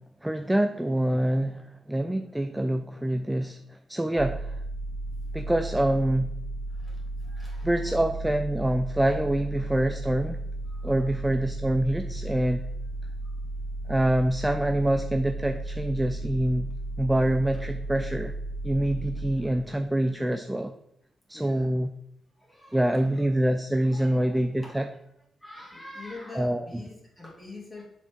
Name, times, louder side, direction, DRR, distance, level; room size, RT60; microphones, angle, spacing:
voice 1, 0.2-4.6 5.3-6.3 7.6-10.4 10.8-12.6 13.9-18.3 18.6-20.7 21.3-21.9 22.7-24.9 26.4-26.7, right 1 dB, 10° right, 7 dB, 0.4 m, -26 dB
sound 1, 4.2-19.9, right 2 dB, 75° right, 0.5 m, -34 dB
voice 2, 7.2-8.0 10.7-11.2 12.0-12.1 17.5-17.6 21.3-21.7 22.4-23.3 23.8-24.8 25.4-27.8, left 2 dB, 10° left, -3 dB, 2.4 m, -45 dB
7.2 x 4.1 x 3.5 m, 0.78 s
cardioid pair, 85°, 0 cm